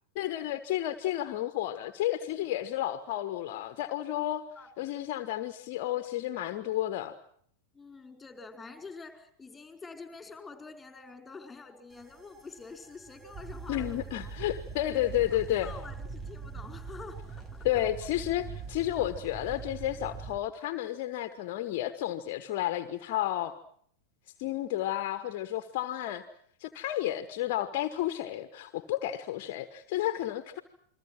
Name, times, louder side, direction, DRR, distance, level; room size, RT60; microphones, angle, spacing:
voice 1, 0.2-4.4 4.8-7.1 13.7-15.7 17.6-23.5 24.4-26.2 26.6-30.6, left 13 dB, 45° left, 11 dB, 1.3 m, -31 dB
voice 2, 7.7-14.3 15.3-17.9, left 4 dB, 10° left, 6 dB, 4.6 m, -47 dB
sound 1, 11.9-20.4, right 5 dB, 15° right, 2.0 m, -42 dB
29.0 x 22.5 x 6.1 m, 0.64 s
figure-of-eight pair, 90°, 0 cm